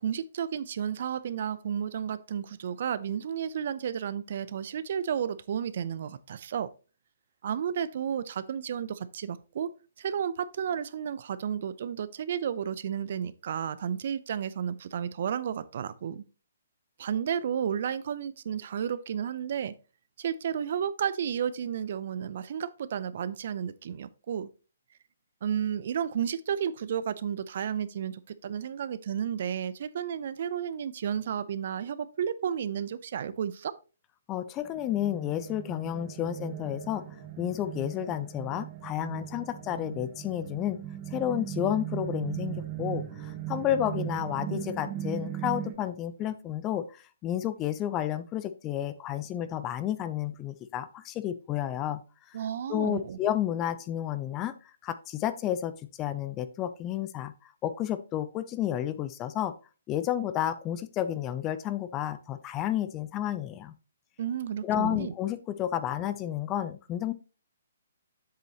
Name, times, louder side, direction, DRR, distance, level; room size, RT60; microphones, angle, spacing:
voice 1, 0.0-6.7 7.4-9.7 10.0-16.2 17.0-19.7 20.2-24.5 25.4-33.7 52.3-53.2 64.2-65.1, right 8 dB, 55° right, 0.6 m, -32 dB
voice 2, 34.3-37.0 37.4-40.8 41.1-52.0 52.3-52.4 52.7-54.6 54.8-57.3 57.6-59.5 59.9-63.7 64.6-67.1, left 11 dB, 25° left, 0.6 m, -31 dB
sound 1, 34.6-45.7, right 12 dB, 25° right, 1.4 m, -38 dB
7.7 x 6.8 x 3.0 m
figure-of-eight pair, 135°, 0 cm